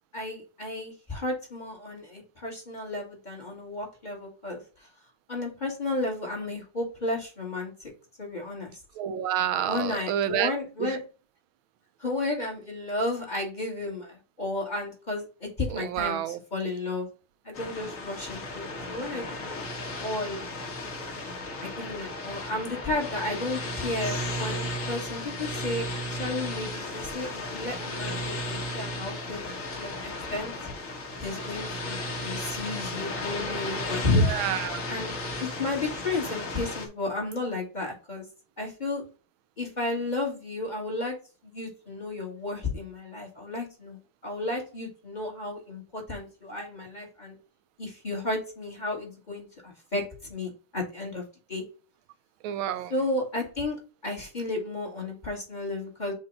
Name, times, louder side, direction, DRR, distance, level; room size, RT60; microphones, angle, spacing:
voice 1, 0.1-4.9 5.3-7.9 8.2-8.7 9.6-11.0 12.0-17.1 17.4-19.7 20.0-20.4 21.6-30.5 31.2-34.3 34.9-38.2 38.6-39.0 39.6-41.2 41.4-47.4 47.8-51.2 51.5-51.6 52.9-53.8 54.0-56.1, left 2 dB, 20° left, 1.6 m, -33 dB
voice 2, 9.0-10.5 10.8-10.9 15.7-16.4 34.3-34.8 52.4-52.9, right 10 dB, 75° right, 1.4 m, -28 dB
sound 1, 17.5-36.9, left 1 dB, 45° left, 1.4 m, -34 dB
6.9 x 2.7 x 5.2 m
omnidirectional pair, 2.4 m